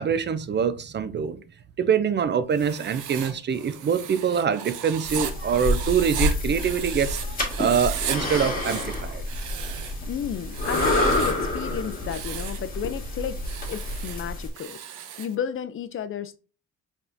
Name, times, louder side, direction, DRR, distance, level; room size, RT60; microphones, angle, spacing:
voice 1, 0.0-1.4 1.8-9.2, right 7 dB, 35° right, 0.4 m, -25 dB
Writing, 2.5-7.2 7.5-8.2 8.5-10.0 10.5-11.4 11.9-12.7 13.4-15.3, right 9 dB, 80° right, 0.7 m, -36 dB
sound 1, 5.1-14.5, left 1 dB, 30° left, 1.8 m, -28 dB
voice 2, 10.1-13.4 13.7-16.4, left 8 dB, 45° left, 0.4 m, -32 dB
4.7 x 3.6 x 2.6 m
cardioid pair, 90°, 30 cm